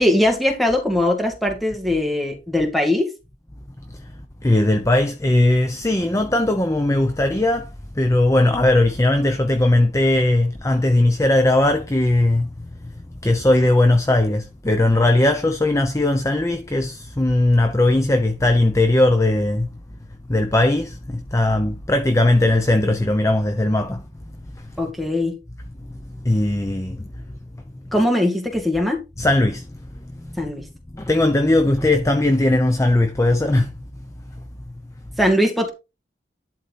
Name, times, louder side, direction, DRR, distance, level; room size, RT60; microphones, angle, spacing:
voice 1, 0.0-3.1 24.8-25.4 27.9-29.0 30.4-30.7 35.2-35.7, left 1 dB, ahead, 2.1 m, -20 dB
voice 2, 4.4-7.7 8.0-12.5 12.8-12.9 13.2-19.7 20.3-24.0 26.2-27.1 29.2-29.7 30.4-30.5 30.9-33.7, left 1 dB, 15° left, 0.7 m, -18 dB
11.5 x 4.4 x 4.2 m
head